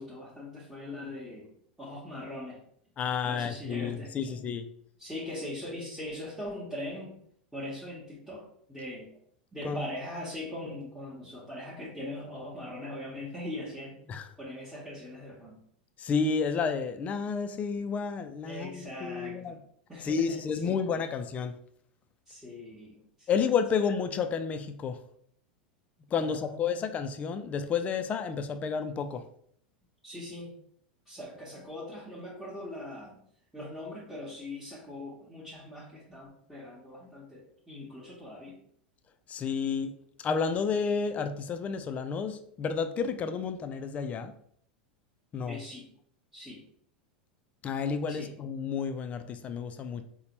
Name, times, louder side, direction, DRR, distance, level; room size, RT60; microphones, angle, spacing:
voice 1, 0.0-1.5 1.8-2.6 3.2-4.4 5.0-7.2 7.5-9.1 9.5-14.0 14.4-15.6 18.4-19.6 19.9-20.8 22.3-23.3 26.2-26.8 30.0-30.6 31.1-33.2 33.5-38.6 45.5-45.9 46.3-46.6 48.1-48.3, left 1 dB, 5° right, -9 dB, 0.9 m, -41 dB
voice 2, 3.0-4.7 9.6-9.8 14.1-14.3 16.0-19.6 20.0-21.6 23.3-25.0 26.1-29.2 39.3-39.9 40.2-44.3 45.3-45.6 47.6-50.0, left 6 dB, 30° left, 9 dB, 0.3 m, -31 dB
3.9 x 2.1 x 2.9 m, 0.65 s
figure-of-eight pair, 85°, 5 cm